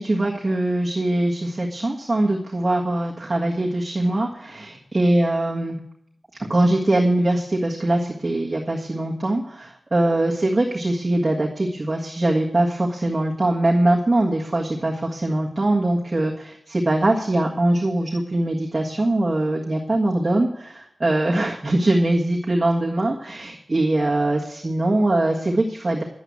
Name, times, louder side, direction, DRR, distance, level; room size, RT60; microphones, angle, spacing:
voice 1, 0.0-5.7 6.4-26.0, right 1 dB, 35° right, -3 dB, 1.6 m, -22 dB
11.0 x 8.0 x 9.6 m, 0.75 s
wide cardioid pair, 100°, 0 cm